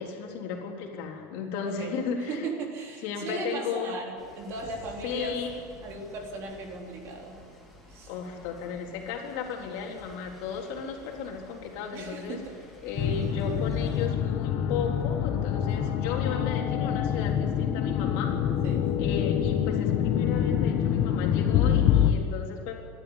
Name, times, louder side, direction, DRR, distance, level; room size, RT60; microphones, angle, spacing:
voice 1, 0.0-2.5 3.0-4.0 5.0-5.5 8.1-12.4 12.8-18.5 19.0-22.8, left 6 dB, 60° left, 1 dB, 3.6 m, -35 dB
voice 2, 2.3-5.4 5.8-7.4 7.9-8.1 11.9-12.6 18.6-18.9, right 3 dB, 40° right, 1 dB, 3.9 m, -37 dB
sound 1, 4.2-14.1, left 1 dB, ahead, 3.5 m, -51 dB
sound 2, 13.0-22.1, left 9 dB, 40° left, 1.2 m, -26 dB
28.0 x 12.5 x 9.9 m, 2.2 s
cardioid pair, 170°, 7 cm